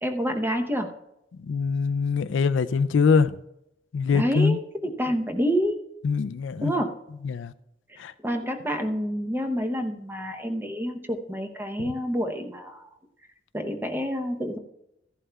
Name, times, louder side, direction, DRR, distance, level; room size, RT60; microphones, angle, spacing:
voice 1, 0.0-0.9 4.1-5.8 6.6-7.0 7.9-12.9 13.5-14.6, equal, 10° right, 0.8 m, -28 dB
voice 2, 1.4-3.4 3.9-4.6 6.0-6.7 7.2-7.5 8.0-8.1 11.8-11.9, left 5 dB, 70° left, 0.4 m, -23 dB
15.0 x 11.0 x 2.3 m
head